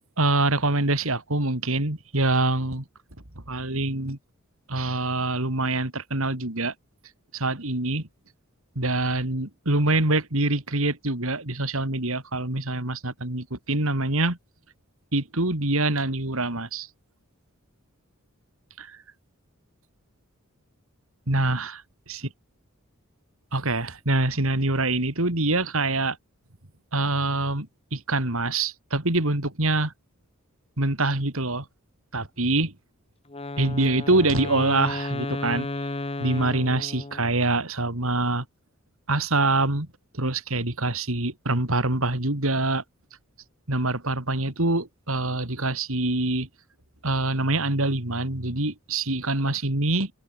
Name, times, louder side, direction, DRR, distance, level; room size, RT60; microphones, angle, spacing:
voice 1, 0.2-2.8 3.5-4.2 4.7-6.7 7.3-8.1 8.8-14.4 15.1-16.9 18.8-19.0 21.3-21.8 22.1-22.2 23.5-26.2 26.9-29.9 30.8-31.7 32.1-32.7 33.6-35.7 36.2-38.5 39.1-39.9 40.1-42.8 43.7-46.5 47.0-50.1, right 2 dB, 65° right, 3.6 m, -25 dB
Wind instrument woodwind instrument, 33.3-37.5, left 2 dB, 25° left, 1.0 m, -33 dB
head